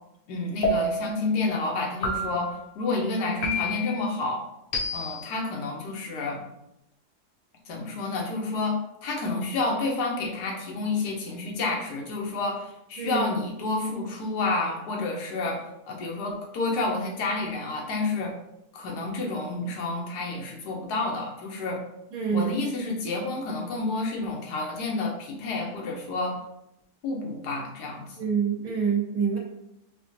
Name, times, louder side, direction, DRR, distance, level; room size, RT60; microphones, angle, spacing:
voice 1, 0.3-4.4 4.9-6.4 7.7-18.3 18.7-21.8 22.3-26.4 27.0-28.2, left 3 dB, 90° left, 0 dB, 1.3 m, -29 dB
sound 1, 0.6-1.2 2.0-2.6 3.4-4.0 4.7-5.3, left 1 dB, 60° left, 0.6 m, -28 dB
voice 2, 22.1-22.5 28.2-29.4, right 6 dB, 65° right, -1 dB, 1.3 m, -26 dB
4.7 x 2.2 x 2.7 m, 0.84 s
omnidirectional pair, 1.7 m